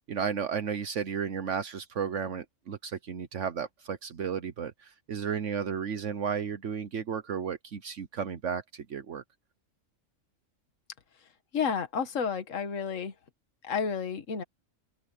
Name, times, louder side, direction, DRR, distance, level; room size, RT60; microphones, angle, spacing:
voice 1, 0.1-9.2, right 7 dB, 65° right, 1.2 m, -33 dB
voice 2, 11.5-13.1 13.6-14.4, left 6 dB, 70° left, 1.8 m, -31 dB
open air
omnidirectional pair, 1.4 m